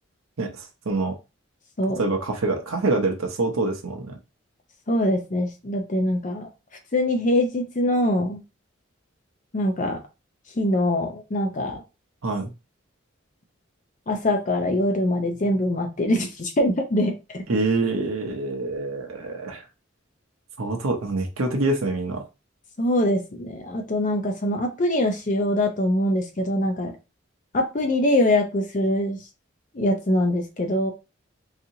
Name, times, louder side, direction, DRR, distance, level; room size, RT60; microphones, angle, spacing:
voice 1, 0.4-1.2 2.0-4.2 12.2-12.5 17.5-19.6 20.6-22.2, right 2 dB, 85° right, 2 dB, 0.7 m, -25 dB
voice 2, 4.9-6.5 6.9-8.4 9.5-10.0 10.6-11.8 14.1-17.4 22.8-26.9 27.5-29.2 29.7-30.9, left 1 dB, 35° left, 4 dB, 0.5 m, -23 dB
4.0 x 2.8 x 2.7 m, 0.27 s
head